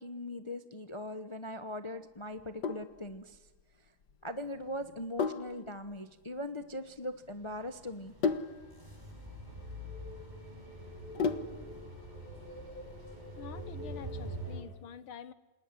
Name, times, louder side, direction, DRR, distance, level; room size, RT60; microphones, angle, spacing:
voice 1, 0.0-3.5 4.2-8.1, left 1 dB, 30° left, 9 dB, 0.5 m, -40 dB
Sink (filling or washing), 2.3-11.8, left 5 dB, 55° left, 1.8 m, -38 dB
sound 1, 7.3-14.6, equal, 20° right, 5.9 m, -44 dB
voice 2, 13.4-15.3, left 8 dB, 80° left, 14 dB, 2.0 m, -47 dB
28.0 x 20.5 x 9.9 m, 1.1 s
omnidirectional pair, 2.2 m